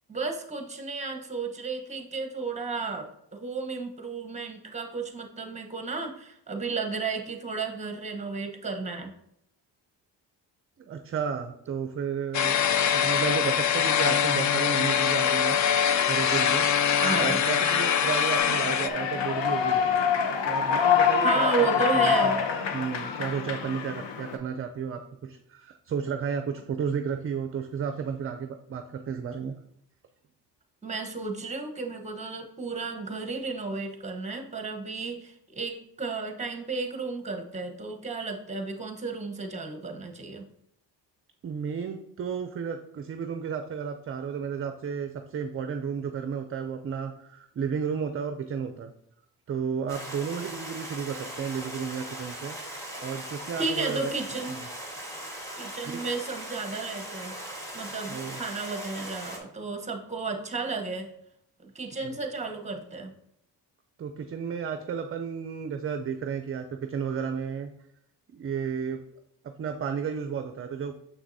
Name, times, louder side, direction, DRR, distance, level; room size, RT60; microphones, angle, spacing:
voice 1, 0.1-9.1 17.0-17.4 21.2-22.4 30.8-40.5 53.6-54.6 55.6-57.3 57.7-61.1 61.7-63.1, right 4 dB, 15° right, 4 dB, 1.0 m, -33 dB
voice 2, 10.8-12.6 12.9-15.6 16.1-16.7 17.2-20.0 20.4-21.7 21.9-22.4 22.7-29.5 41.4-48.9 49.5-52.6 53.0-54.1 54.5-54.7 55.8-56.0 58.1-58.4 62.0-62.2 64.0-67.7 68.3-69.0 69.6-70.9, right 7 dB, 35° right, 7 dB, 0.4 m, -32 dB
sound 1, 12.3-18.9, left 8 dB, 45° left, 0.4 m, -23 dB
Human voice / Clapping / Cheering, 18.4-24.4, left 7 dB, 90° left, 0.8 m, -25 dB
Stream, 49.9-59.4, right 1 dB, 5° left, 1.5 m, -39 dB
6.7 x 6.0 x 2.7 m, 0.76 s
cardioid pair, 100°, 42 cm